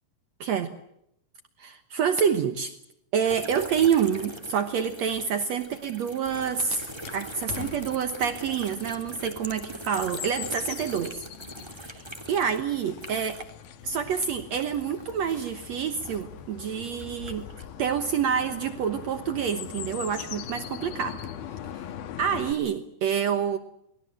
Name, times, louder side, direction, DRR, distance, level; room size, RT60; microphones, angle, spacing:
voice 1, 0.4-0.7 1.6-2.7 3.1-11.2 12.3-13.4 13.8-17.5 17.8-21.2 21.7-21.8 22.2-23.6, right 7 dB, 80° right, 9 dB, 1.5 m, -27 dB
sound 1, 3.2-13.6 13.9-16.4 16.9-17.7, right 1 dB, 10° right, 1.9 m, -42 dB
Chirp tweet, 6.3-22.5, left 9 dB, 70° left, 3.0 m, -41 dB
28.5 x 20.5 x 7.7 m, 0.77 s
omnidirectional pair, 4.8 m